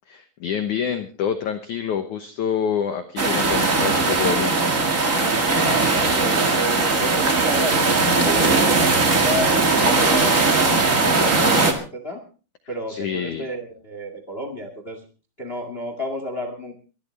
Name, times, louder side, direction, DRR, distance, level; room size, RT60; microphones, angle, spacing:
voice 1, 0.1-4.5 12.9-13.5, left 8 dB, 80° left, 7 dB, 1.8 m, -26 dB
sound 1, 3.2-11.7, right 3 dB, 80° right, 0.7 m, -19 dB
voice 2, 5.5-12.2 12.7-15.0 15.4-16.7, equal, 60° left, 7 dB, 0.6 m, -32 dB
23.0 x 13.0 x 3.3 m, 0.35 s
omnidirectional pair, 5.0 m